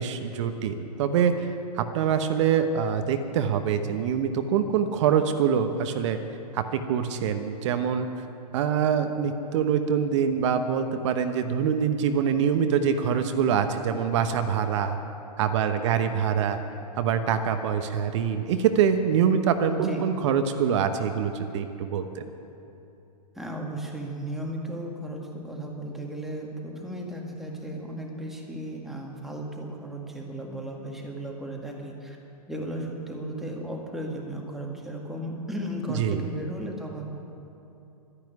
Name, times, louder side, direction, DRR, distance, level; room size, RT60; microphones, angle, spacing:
voice 1, 0.0-6.2 6.5-8.1 8.5-15.0 15.4-16.6 16.9-22.2 36.0-36.2, right 7 dB, 45° right, 8 dB, 1.0 m, -25 dB
voice 2, 19.7-20.1 23.3-32.2 32.5-37.1, right 1 dB, ahead, -1 dB, 2.0 m, -35 dB
12.0 x 10.5 x 9.6 m, 2.8 s
hypercardioid pair, 125°, 21 cm